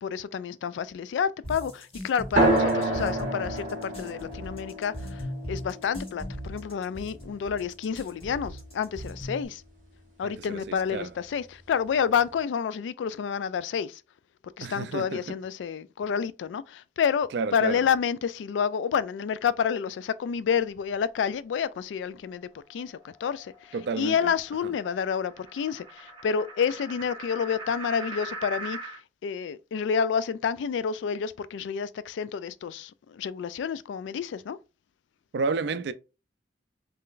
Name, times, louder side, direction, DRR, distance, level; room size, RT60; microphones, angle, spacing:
voice 1, 0.0-9.6 10.2-14.0 14.6-29.0 29.2-34.6, left 7 dB, 85° left, 0.3 m, -29 dB
sound 1, 1.4-9.5, equal, 35° left, 1.5 m, -38 dB
sound 2, 2.4-7.4, right 2 dB, 50° right, 1.4 m, -28 dB
voice 2, 10.2-11.1 14.6-15.2 17.3-17.8 23.7-24.2 35.3-35.9, right 4 dB, 65° right, 0.4 m, -31 dB
sound 3, 22.3-29.0, right 3 dB, 30° right, 1.5 m, -42 dB
3.7 x 3.2 x 2.5 m
head